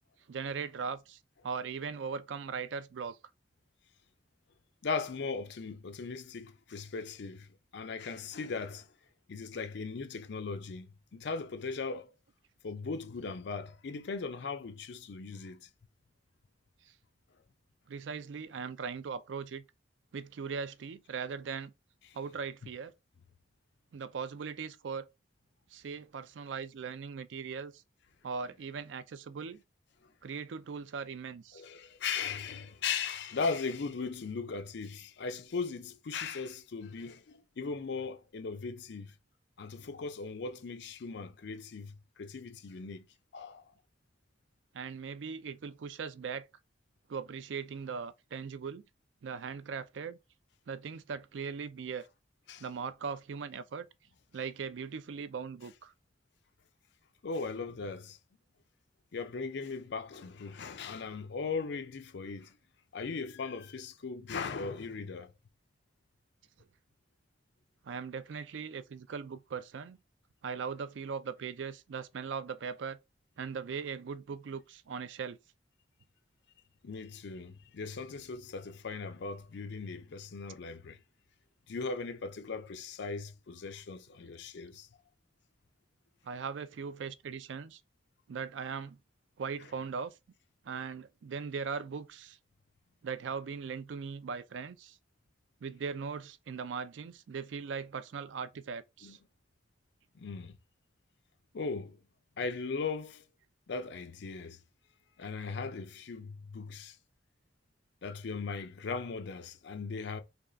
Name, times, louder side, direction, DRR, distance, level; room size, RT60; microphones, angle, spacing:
voice 1, 0.3-1.2 1.4-3.2 17.9-19.6 20.1-21.7 22.1-22.9 23.9-25.1 25.7-27.8 28.2-29.6 30.2-31.6 44.7-46.5 47.1-48.8 49.2-50.2 50.7-52.1 52.6-53.9 54.3-55.9 67.8-70.0 70.4-73.0 73.4-75.4 84.2-84.3 86.2-87.8 88.3-89.0 89.4-90.1 90.7-92.4 93.0-95.0 95.6-99.2, right 6 dB, 75° right, 0.4 m, -39 dB
voice 2, 4.8-8.9 9.3-12.1 12.6-15.7 22.0-22.2 31.5-39.1 39.6-43.1 43.3-43.6 52.5-52.6 57.2-58.2 59.1-62.6 62.9-65.3 76.8-81.0 81.7-84.9 99.0-99.2 100.1-100.6 101.5-102.0 102.4-103.2 103.7-104.6 105.2-107.0 108.0-110.2, left 4 dB, 65° left, 0.5 m, -38 dB
3.4 x 2.4 x 3.8 m
head